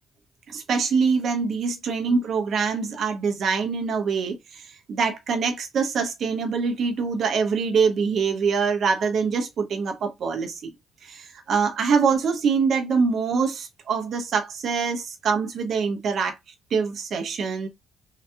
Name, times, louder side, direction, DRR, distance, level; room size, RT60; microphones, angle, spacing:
voice 1, 0.5-10.6 11.0-16.4 16.7-17.7, right 5 dB, 60° right, 1.0 m, -24 dB
3.8 x 2.8 x 2.3 m
cardioid pair, 90°, 0 cm